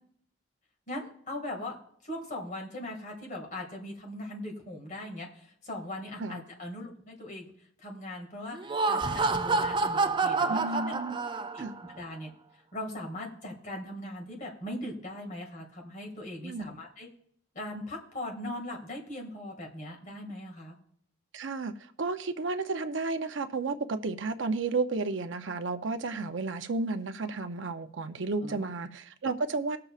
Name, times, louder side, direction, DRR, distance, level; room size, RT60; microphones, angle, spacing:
voice 1, 0.9-1.8 2.0-7.5 7.8-8.6 8.9-11.0 11.5-11.7 11.9-12.3 12.7-17.1 17.5-20.8 28.4-28.7, left 1 dB, 40° left, 2.1 m, -39 dB
Laughter, 8.5-11.8, right 3 dB, 25° right, 0.4 m, -28 dB
voice 2, 10.5-11.2 11.6-11.7 16.4-16.7 21.3-21.7 22.0-29.8, right 3 dB, 70° right, 0.6 m, -32 dB
18.5 x 6.7 x 2.5 m
head